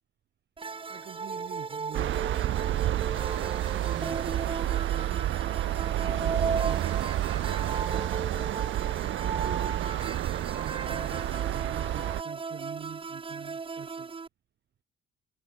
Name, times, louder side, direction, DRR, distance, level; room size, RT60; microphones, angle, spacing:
sound 1, 0.6-14.3, right 5 dB, 25° right, 1.0 m, -36 dB
voice 1, 0.9-2.2 3.4-5.4 6.1-7.8 8.9-14.1, right 9 dB, 60° right, 3.5 m, -45 dB
sound 2, 1.9-12.2, right 13 dB, 75° right, 1.6 m, -30 dB
cardioid pair, 90°, 20 cm